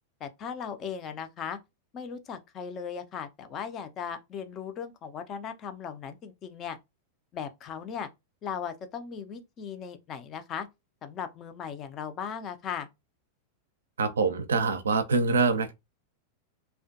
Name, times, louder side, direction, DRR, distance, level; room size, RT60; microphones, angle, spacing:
voice 1, 0.2-1.6 1.9-6.8 7.3-8.1 8.4-10.7 11.0-12.9, left 7 dB, 30° left, 0.4 m, -37 dB
voice 2, 14.0-15.7, right 4 dB, 70° right, 0.4 m, -25 dB
2.4 x 2.2 x 2.5 m
figure-of-eight pair, 90°, 0 cm